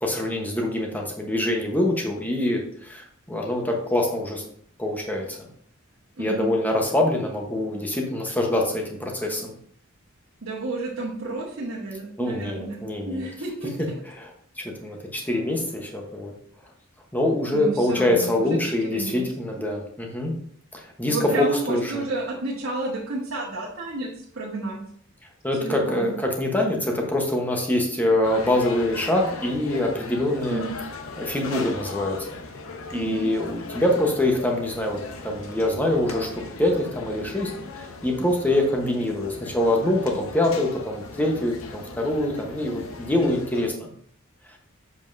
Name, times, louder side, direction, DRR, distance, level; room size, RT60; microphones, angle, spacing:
voice 1, 0.0-4.4 4.8-5.5 6.2-9.5 12.2-13.3 13.8-13.9 14.2-14.3 14.6-16.3 17.1-20.3 20.7-22.0 25.4-30.6 31.2-32.4 32.9-43.9, left 1 dB, 10° left, 1 dB, 1.1 m, -25 dB
voice 2, 6.2-6.6 10.4-12.8 13.0-13.9 17.5-18.6 18.8-19.3 21.1-24.1 24.3-24.8 25.6-26.1 30.5-30.7 32.9-33.3, right 2 dB, 70° right, -5 dB, 1.4 m, -31 dB
sound 1, 28.2-43.7, left 3 dB, 80° left, 0.8 m, -38 dB
7.2 x 5.4 x 2.7 m, 0.63 s
head